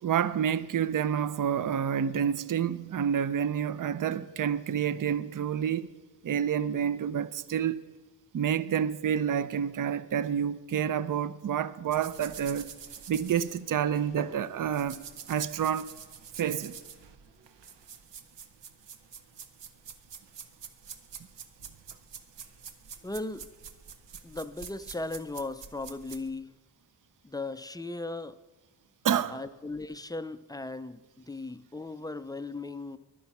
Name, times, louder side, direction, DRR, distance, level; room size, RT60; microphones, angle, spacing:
voice 1, 0.0-5.9 6.2-7.8 8.3-12.7 13.1-15.0 15.3-15.9 16.4-16.8 29.0-29.4, right 8 dB, 50° right, 0.5 m, -28 dB
sound 1, 11.9-26.3, right 7 dB, 90° right, 0.8 m, -47 dB
voice 2, 23.0-23.5 24.2-26.5 27.2-28.4 29.3-33.0, left 2 dB, 10° left, 0.3 m, -37 dB
11.0 x 9.6 x 5.9 m
wide cardioid pair, 100°, 42 cm